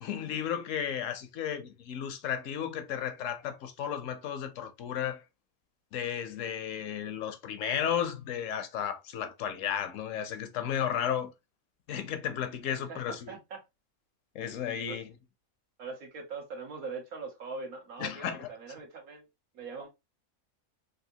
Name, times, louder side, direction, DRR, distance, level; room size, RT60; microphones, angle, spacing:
voice 1, 0.0-5.2 5.9-11.3 11.9-13.3 14.3-15.1 18.0-18.5, left 9 dB, 70° left, 0.9 m, -34 dB
voice 2, 13.3-13.6 14.9-15.0 15.8-19.3 19.5-19.9, right 4 dB, 80° right, 1.5 m, -41 dB
3.5 x 2.6 x 2.6 m
omnidirectional pair, 1.5 m